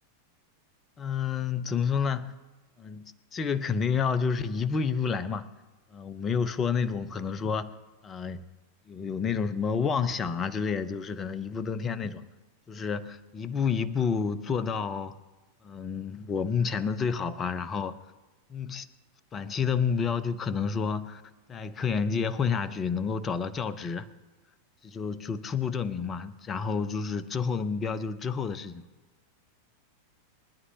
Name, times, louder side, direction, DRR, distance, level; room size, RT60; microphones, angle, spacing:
voice 1, 1.0-2.3 2.8-3.0 3.3-5.5 5.9-7.7 8.0-8.4 8.9-12.2 12.7-15.2 15.6-17.9 18.5-18.9 19.3-21.2 21.5-24.1 24.8-28.9, left 6 dB, 25° left, 14 dB, 0.8 m, -29 dB
23.0 x 11.0 x 2.9 m, 1.2 s
figure-of-eight pair, 90°, 0 cm